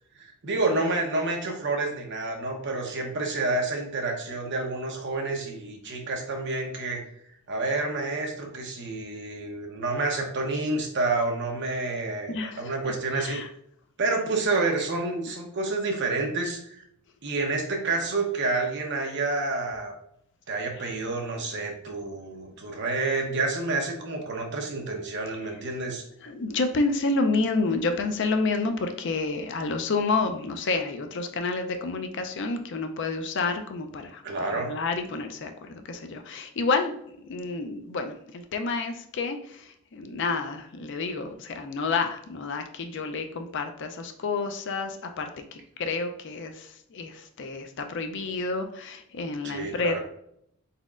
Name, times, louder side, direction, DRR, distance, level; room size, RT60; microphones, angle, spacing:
voice 1, 0.4-7.0 7.5-13.4 14.0-16.6 17.2-19.9 20.5-26.0 34.2-34.7 49.4-50.0, right 3 dB, 55° right, 2 dB, 0.9 m, -29 dB
voice 2, 12.3-12.7 13.1-13.5 25.3-25.5 26.2-50.0, left 3 dB, 55° left, 6 dB, 0.5 m, -29 dB
4.2 x 4.0 x 2.4 m, 0.71 s
head